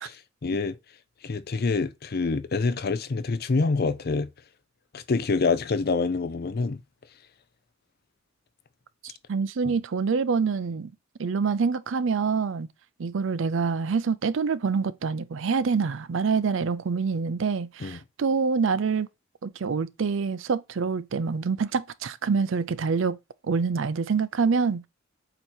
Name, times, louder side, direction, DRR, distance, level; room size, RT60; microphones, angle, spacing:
voice 1, 0.0-0.8 1.2-4.3 4.9-6.8 17.8-18.0, left 4 dB, 50° left, 0.5 m, -26 dB
voice 2, 9.0-10.9 11.2-12.7 13.0-19.1 19.4-23.2 23.4-24.9, right 5 dB, 65° right, 0.5 m, -26 dB
8.0 x 2.9 x 4.3 m
head